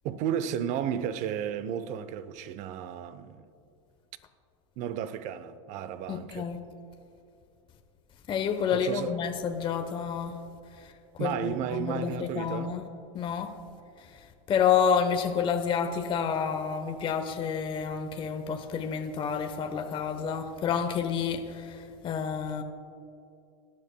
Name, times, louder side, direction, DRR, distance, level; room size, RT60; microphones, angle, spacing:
voice 1, 0.0-3.5 4.8-6.5 8.7-9.1 11.2-12.8, right 9 dB, 50° right, 0.7 m, -33 dB
voice 2, 6.1-6.6 8.3-10.4 10.8-12.8 13.1-13.6 14.0-22.6, left 7 dB, 35° left, 0.9 m, -29 dB
21.0 x 10.5 x 2.2 m
supercardioid pair, 115°, 15 cm